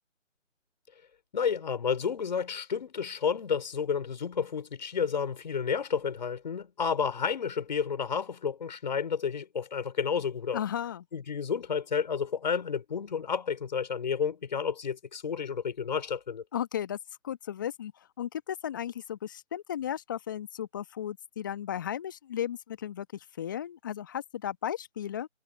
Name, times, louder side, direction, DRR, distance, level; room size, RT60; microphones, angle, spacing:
voice 1, 1.3-10.6 11.1-16.4, left 6 dB, 35° left, 5.4 m, -31 dB
voice 2, 10.5-11.0 16.5-17.0 17.2-17.9 18.2-23.1 23.4-25.3, left 10 dB, 15° left, 1.5 m, -35 dB
figure-of-eight pair, 160°, 38 cm